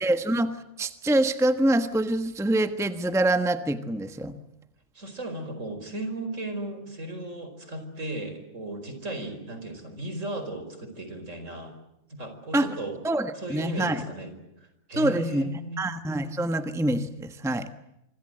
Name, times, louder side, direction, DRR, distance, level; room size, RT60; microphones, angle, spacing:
voice 1, 0.0-4.4 12.5-12.7 13.0-14.0 15.0-15.5 15.8-17.7, right 1 dB, ahead, 9 dB, 1.2 m, -25 dB
voice 2, 5.0-11.7 12.1-13.0 13.4-14.3 14.9-15.8, right 2 dB, 65° right, 8 dB, 5.2 m, -36 dB
26.0 x 25.5 x 7.8 m, 0.86 s
omnidirectional pair, 1.4 m